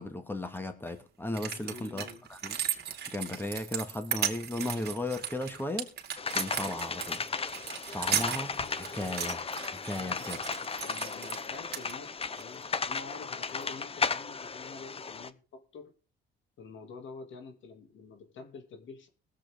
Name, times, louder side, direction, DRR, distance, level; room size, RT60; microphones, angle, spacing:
voice 1, 0.0-2.6 3.1-5.9 6.3-7.2 7.9-9.4 9.7-10.4, left 1 dB, 10° left, 8 dB, 2.0 m, -36 dB
sound 1, 0.9-1.0 1.3-11.5 11.7-12.4 13.5-13.6, right 8 dB, 55° right, 2.3 m, -36 dB
voice 2, 1.5-2.2 10.0-10.5 10.8-15.9 16.6-19.1, left 4 dB, 75° left, 6 dB, 2.4 m, -47 dB
sound 2, 6.2-15.3, left 5 dB, 30° left, 0.8 m, -35 dB
21.5 x 7.6 x 3.6 m, 0.35 s
cardioid pair, 90°, 20 cm